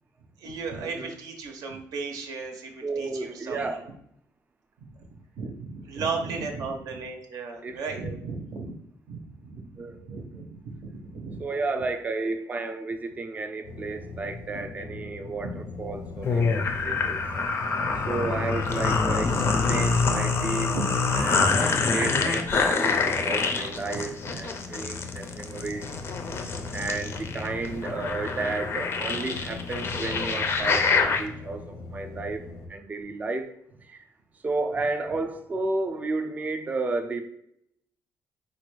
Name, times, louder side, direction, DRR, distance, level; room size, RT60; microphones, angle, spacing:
voice 1, 0.4-3.8 4.8-5.1 5.4-8.7 9.1-11.4 15.1-15.2 16.2-17.0 19.3-19.5 20.7-20.8 21.2-21.8 22.1-22.2 24.3-24.4, right 4 dB, 75° right, 3 dB, 0.6 m, -36 dB
voice 2, 2.8-3.9 7.6-8.2 9.8-10.2 11.4-17.2 18.1-20.8 21.2-26.0 26.7-32.4 32.7-33.5 33.8-34.0 34.4-37.2, right 3 dB, 25° right, 6 dB, 0.4 m, -32 dB
sound 1, 13.6-32.7, left 3 dB, 80° left, 0.6 m, -39 dB
sound 2, 16.3-31.2, left 4 dB, 40° left, 0.4 m, -26 dB
4.1 x 2.2 x 3.0 m, 0.73 s
cardioid pair, 155°, 6 cm